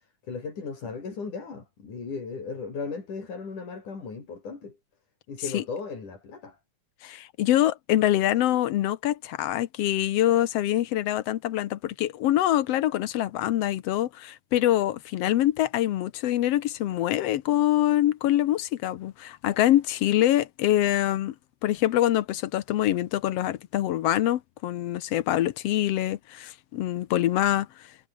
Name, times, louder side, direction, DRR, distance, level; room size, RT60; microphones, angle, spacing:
voice 1, 0.3-4.8 5.3-6.6, left 4 dB, 85° left, 6.9 m, -36 dB
voice 2, 7.0-21.3 21.6-27.7, left 13 dB, 70° left, 1.7 m, -25 dB
omnidirectional pair, 3.5 m